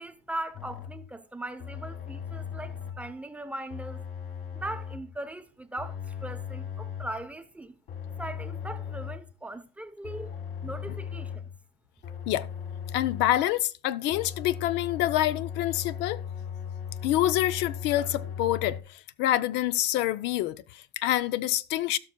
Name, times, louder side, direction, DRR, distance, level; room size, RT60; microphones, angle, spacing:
voice 1, 0.0-4.0 4.5-7.7 8.2-10.3 10.6-11.4, right 1 dB, 5° right, 0.7 m, -39 dB
sound 1, 0.5-1.1 1.6-3.1 3.7-5.2 5.8-7.2 7.9-9.3 10.0-11.6 12.0-13.4 14.1-18.8, left 8 dB, 50° left, 1.6 m, -38 dB
voice 2, 12.9-16.2 17.0-22.0, left 13 dB, 65° left, 0.5 m, -27 dB
17.0 x 5.8 x 2.2 m
cardioid pair, 120°, 19 cm